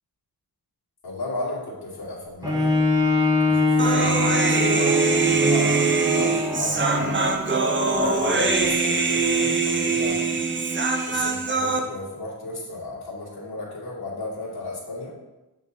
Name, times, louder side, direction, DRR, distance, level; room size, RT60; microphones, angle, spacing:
voice 1, 1.0-2.8 3.4-7.2 7.9-10.6 11.1-15.1, left 2 dB, 75° left, -5 dB, 2.2 m, -34 dB
Bowed string instrument, 2.4-8.1 8.7-8.8, left 2 dB, 10° right, 1.0 m, -24 dB
Human voice, 3.8-11.8, right 4 dB, 30° right, 0.6 m, -22 dB
7.1 x 6.2 x 2.7 m, 1.0 s
wide cardioid pair, 135°, 38 cm